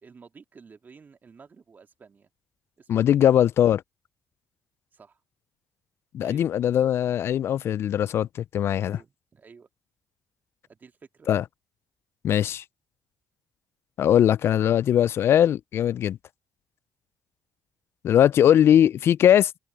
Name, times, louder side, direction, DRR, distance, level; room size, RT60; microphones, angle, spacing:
voice 1, 0.0-2.3 2.8-3.2 4.9-5.2 6.2-6.4 8.8-9.7 10.7-11.3, right 5 dB, 40° right, 2.4 m, -51 dB
voice 2, 2.9-3.8 6.1-8.3 8.5-9.0 11.3-11.4 12.2-12.6 14.0-16.2 18.0-19.5, left 10 dB, 60° left, 0.4 m, -20 dB
hypercardioid pair, 55°, 5 cm